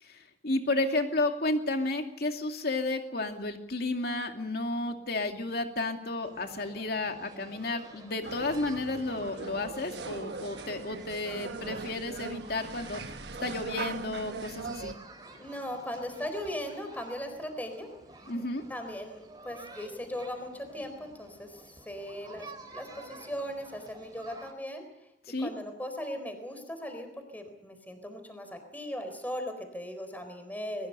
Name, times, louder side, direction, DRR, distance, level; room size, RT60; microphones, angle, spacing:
voice 1, 0.0-13.2 13.4-15.0 18.3-18.6 25.3-25.5, left 2 dB, 60° left, 4 dB, 2.5 m, -32 dB
sound 1, 6.2-24.5, right 2 dB, 25° right, 3.7 m, -51 dB
sound 2, 8.2-14.9, right 4 dB, 70° right, 1.3 m, -40 dB
voice 2, 15.4-17.9 18.7-24.8 25.4-27.1 27.3-30.9, equal, 10° left, 7 dB, 4.0 m, -38 dB
22.0 x 21.0 x 6.8 m, 0.82 s
head